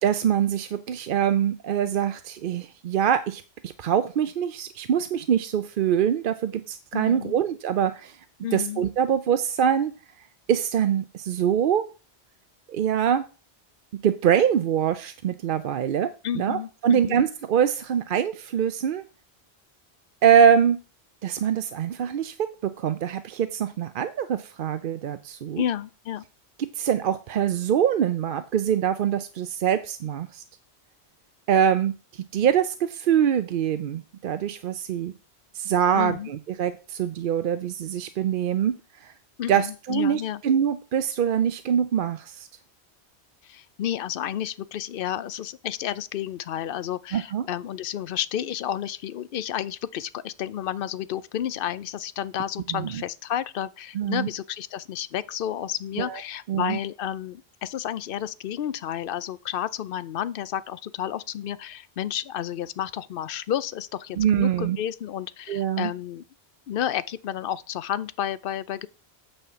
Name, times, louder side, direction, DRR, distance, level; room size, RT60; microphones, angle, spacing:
voice 1, 0.0-8.2 8.5-9.9 10.5-11.9 12.7-13.2 14.0-16.1 16.3-19.0 20.2-20.8 21.2-25.6 26.6-30.4 31.5-35.1 35.5-38.7 39.0-39.1 39.5-42.5 47.1-47.4 52.7-53.0 53.9-54.3 56.0-56.2 56.5-56.8 64.2-64.8 65.5-65.9, right 8 dB, 60° right, 0.7 m, -24 dB
voice 2, 6.9-7.4 8.4-8.8 16.2-17.2 25.6-26.2 35.9-36.3 39.4-40.4 43.4-66.2 66.7-68.9, left 10 dB, 60° left, 0.7 m, -31 dB
9.0 x 4.3 x 6.9 m
omnidirectional pair, 1.1 m